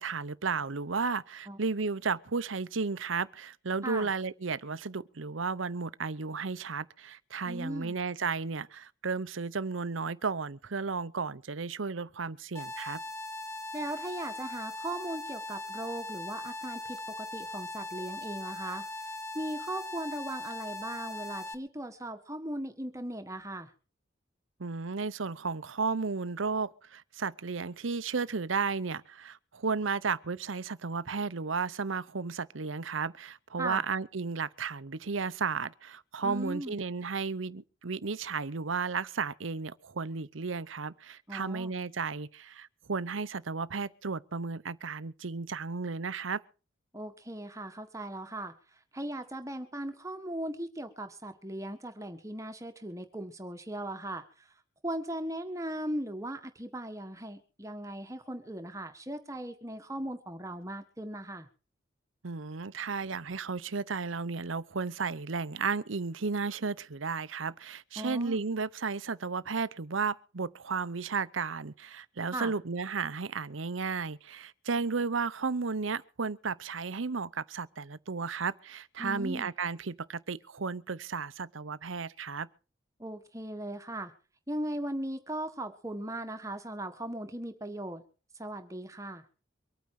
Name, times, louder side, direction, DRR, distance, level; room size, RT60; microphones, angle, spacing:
voice 1, 0.0-13.0 24.6-46.4 62.2-82.5, right 4 dB, 85° right, 0.8 m, -34 dB
voice 2, 7.4-8.0 13.7-23.7 33.6-33.8 36.2-36.8 41.3-41.7 46.9-54.5 54.8-61.5 68.0-68.4 72.3-72.5 79.0-79.5 83.0-84.1 84.5-88.0 88.3-89.2, right 1 dB, 15° right, 1.6 m, -38 dB
sound 1, 12.5-21.5, left 2 dB, 15° left, 1.4 m, -40 dB
24.0 x 9.4 x 4.8 m
head